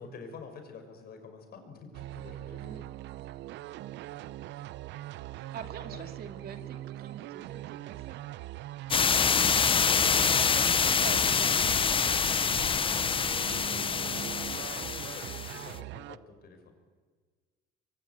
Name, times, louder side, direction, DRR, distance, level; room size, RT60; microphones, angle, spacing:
voice 1, 0.0-2.8 5.8-6.1 9.5-10.2 13.0-14.2 15.0-16.7, left 5 dB, 55° left, 6 dB, 6.1 m, -48 dB
sound 1, 1.9-16.2, right 15 dB, 75° right, 0.7 m, -41 dB
voice 2, 5.5-8.2 10.0-12.8, right 7 dB, 55° right, 6 dB, 2.4 m, -45 dB
sound 2, 8.9-15.7, left 6 dB, 30° left, 0.8 m, -26 dB
26.0 x 23.5 x 9.3 m, 1.5 s
cardioid pair, 110°, 19 cm